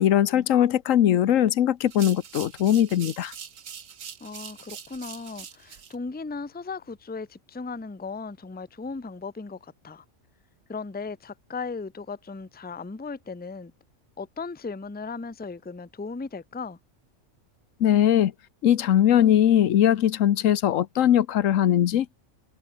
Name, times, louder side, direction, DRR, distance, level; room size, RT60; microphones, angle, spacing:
voice 1, 0.0-3.3 17.8-18.3 18.6-22.1, left 11 dB, 90° left, 1.2 m, -20 dB
sound 1, 1.9-6.0, right 8 dB, 85° right, 1.6 m, -42 dB
voice 2, 4.2-10.0 10.7-13.7 14.2-16.8, left 4 dB, 10° left, 0.5 m, -36 dB
omnidirectional pair, 1.3 m